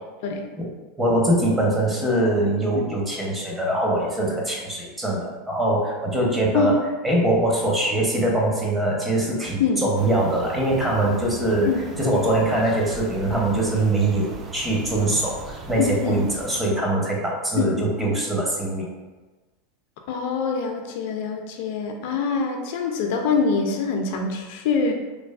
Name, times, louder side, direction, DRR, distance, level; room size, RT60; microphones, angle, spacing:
voice 1, 1.0-6.8 7.0-15.4 15.7-18.9, right 1 dB, 15° right, -2 dB, 0.7 m, -22 dB
sound 1, 10.0-16.6, right 3 dB, 30° right, 0.3 m, -38 dB
voice 2, 15.8-16.2 17.6-17.8 20.1-24.9, left 5 dB, 65° left, 4 dB, 0.3 m, -24 dB
3.1 x 2.0 x 2.3 m, 1.2 s
hypercardioid pair, 100°, 0 cm